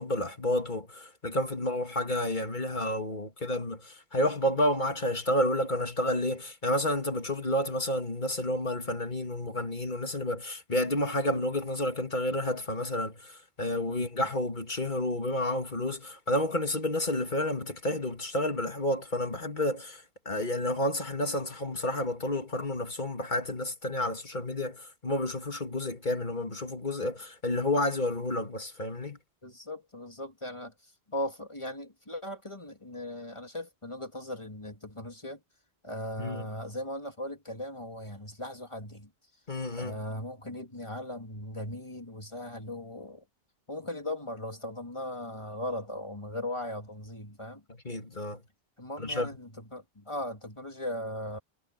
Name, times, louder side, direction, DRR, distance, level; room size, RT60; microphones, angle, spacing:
voice 1, 0.0-29.2 36.2-36.5 39.5-40.1 47.7-48.4 49.0-49.4, left 1 dB, 50° left, 3.0 m, -30 dB
voice 2, 29.4-35.4 35.8-39.1 39.7-43.2 43.7-47.6 48.8-51.4, left 1 dB, 30° left, 2.5 m, -38 dB
omnidirectional pair, 1.0 m